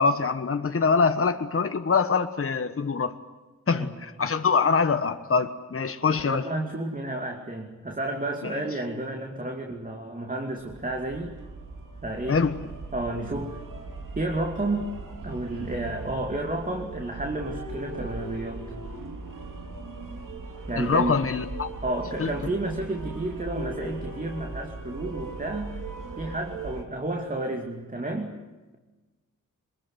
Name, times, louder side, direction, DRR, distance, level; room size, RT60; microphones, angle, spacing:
voice 1, 0.0-3.1 3.7-6.4 12.3-12.5 20.8-21.7 22.2-22.3, left 5 dB, 45° left, 1.3 m, -24 dB
voice 2, 6.1-11.3 12.0-12.5 12.9-13.6 14.2-14.9 15.2-18.7 20.7-21.3 21.8-25.7 26.1-28.3, right 2 dB, 25° right, 2.6 m, -31 dB
sound 1, 10.6-26.8, right 3 dB, 80° right, 3.0 m, -38 dB
24.0 x 21.5 x 9.4 m
cardioid pair, 75°, 32 cm